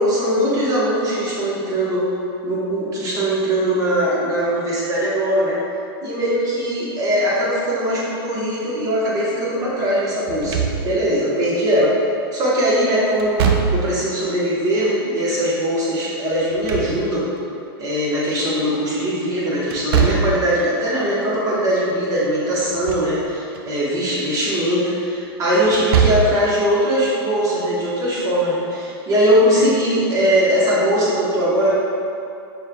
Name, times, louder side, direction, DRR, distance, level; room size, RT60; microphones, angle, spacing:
voice 1, 0.0-2.0 2.4-5.6 6.0-11.9 12.3-13.4 13.7-17.3 17.8-31.7, equal, 25° right, -6 dB, 1.1 m, -20 dB
Slam / Thump thud, 10.3-11.2 13.2-14.1 16.3-17.4 19.7-20.5 22.6-23.2 23.5-23.6 25.7-26.5, right 6 dB, 65° right, 0.5 m, -21 dB
5.4 x 3.2 x 2.3 m, 2.6 s
hypercardioid pair, 130°, 13 cm